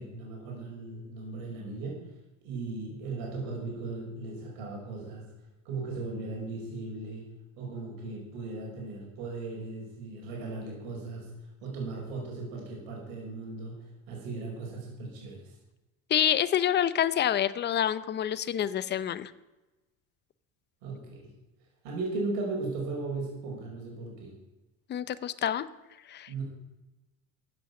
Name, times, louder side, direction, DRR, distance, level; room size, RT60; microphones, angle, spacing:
voice 1, 0.0-2.0 2.4-5.2 5.7-7.3 7.6-11.3 11.6-13.8 14.1-15.5 20.8-21.3 21.8-24.4 26.3-26.4, right 3 dB, 85° right, -2 dB, 5.8 m, -37 dB
voice 2, 16.1-19.3 24.9-25.6 26.1-26.4, left 10 dB, 30° left, 15 dB, 0.7 m, -27 dB
15.0 x 8.9 x 7.1 m, 1.1 s
cardioid pair, 150°, 38 cm